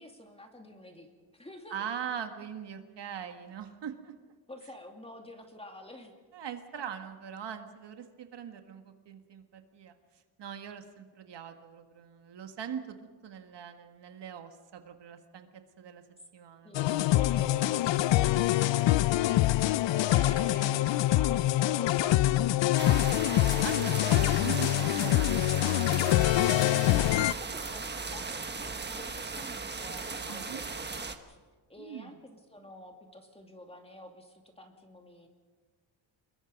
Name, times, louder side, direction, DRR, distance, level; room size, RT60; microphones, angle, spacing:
voice 1, 0.0-1.7 4.5-6.1 16.6-19.0 21.1-22.8 27.0-31.4 31.7-35.3, left 1 dB, 10° left, 3 dB, 2.5 m, -49 dB
voice 2, 1.7-4.1 6.3-9.9 10.4-13.0 13.2-15.5 15.8-16.0 16.3-17.1 18.8-19.8 20.1-20.9 21.9-22.6 23.6-26.1 30.3-30.6 31.8-32.2, right 8 dB, 60° right, 6 dB, 1.8 m, -42 dB
sound 1, 16.7-27.3, left 15 dB, 65° left, 0.6 m, -25 dB
sound 2, 22.8-31.1, right 4 dB, 20° right, 1.3 m, -37 dB
26.5 x 22.0 x 5.3 m, 1.4 s
cardioid pair, 140°, 47 cm